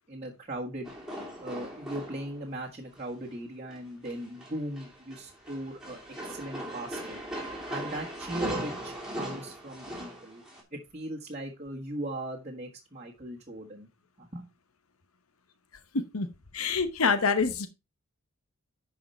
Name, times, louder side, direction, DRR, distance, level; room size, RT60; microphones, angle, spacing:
voice 1, 0.1-0.9 1.4-6.0 6.2-7.2 7.7-10.4 10.7-13.9 14.2-14.5, right 1 dB, 30° right, -4 dB, 1.5 m, -38 dB
sound 1, 0.8-2.5 3.0-3.3 3.7-10.6, equal, ahead, 2.9 m, -39 dB
voice 2, 15.9-16.3 16.5-17.7, left 5 dB, 90° left, 10 dB, 1.0 m, -26 dB
11.0 x 4.9 x 4.3 m, 0.25 s
head